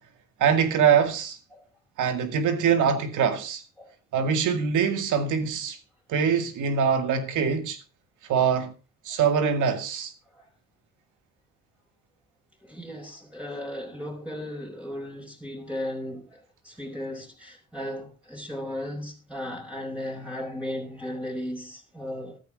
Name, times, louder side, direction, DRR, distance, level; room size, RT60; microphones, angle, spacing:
voice 1, 0.4-1.4 2.0-3.6 4.1-5.8 6.1-7.8 8.3-8.7 9.1-10.1, right 7 dB, 80° right, 2.2 m, -23 dB
voice 2, 12.6-22.4, left 1 dB, 5° right, 5.3 m, -36 dB
14.0 x 12.5 x 3.8 m
cardioid pair, 90°, 30 cm